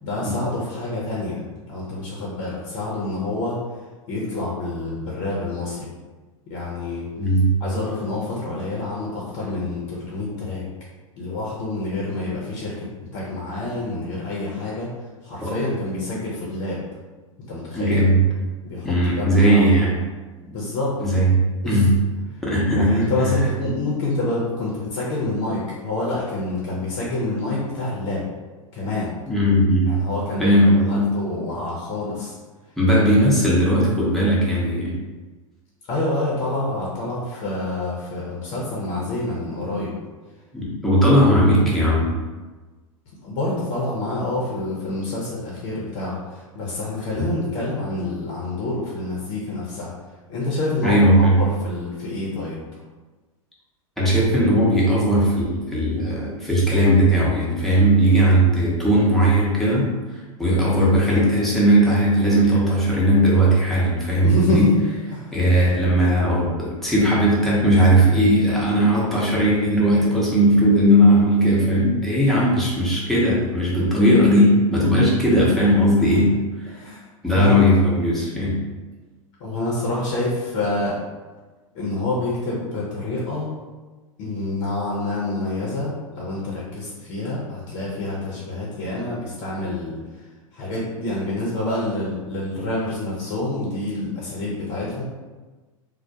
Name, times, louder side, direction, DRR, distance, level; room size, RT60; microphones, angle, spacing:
voice 1, 0.0-3.6 4.1-5.9 6.5-7.1 7.6-10.6 11.2-14.9 15.2-16.8 17.5-18.0 18.6-19.7 20.5-21.0 21.6-22.0 22.3-22.4 22.7-28.2 28.7-29.1 29.9-32.4 33.2-33.3 35.9-39.9 43.2-49.9 50.3-52.6 64.2-64.7 65.1-65.4 76.0-76.2 76.7-77.1 77.3-77.7 79.4-81.0 81.7-83.6 84.2-95.0, left 2 dB, 45° left, -5 dB, 0.6 m, -27 dB
voice 2, 7.2-7.5 15.4-15.5 17.7-18.2 18.8-19.9 21.0-21.9 22.4-23.1 29.3-30.0 30.4-31.1 32.8-34.9 40.5-42.1 47.2-47.3 50.8-51.4 54.0-59.9 60.4-64.7 65.3-76.7 77.2-78.6, equal, ahead, -7 dB, 0.7 m, -18 dB
2.1 x 2.1 x 2.7 m, 1.3 s
hypercardioid pair, 95°, 18 cm